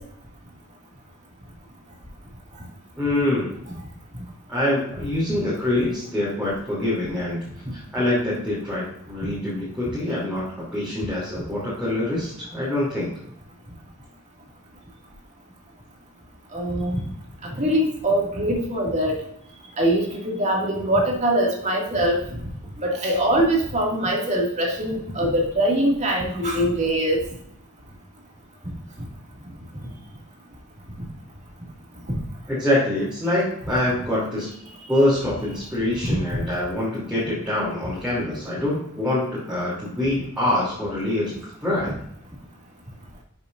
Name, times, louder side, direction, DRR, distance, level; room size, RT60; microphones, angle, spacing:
voice 1, 3.0-3.6 4.5-7.4 7.7-13.1 32.5-34.5 34.9-41.9, left 1 dB, 5° right, -9 dB, 2.9 m, -25 dB
voice 2, 16.5-17.1 17.4-19.2 19.8-22.2 22.8-27.2 32.1-32.2 36.0-36.2, right 1 dB, 30° right, -2 dB, 2.2 m, -22 dB
11.5 x 6.8 x 2.6 m, 0.71 s
head